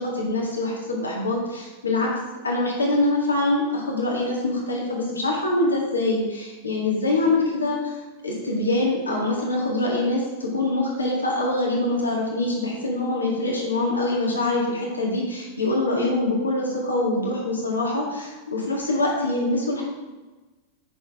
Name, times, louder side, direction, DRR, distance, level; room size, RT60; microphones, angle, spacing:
voice 1, 0.0-2.1 2.4-8.0 8.2-19.8, left 2 dB, 75° left, -3 dB, 1.8 m, -24 dB
8.2 x 6.2 x 3.6 m, 1.2 s
figure-of-eight pair, 90°, 0 cm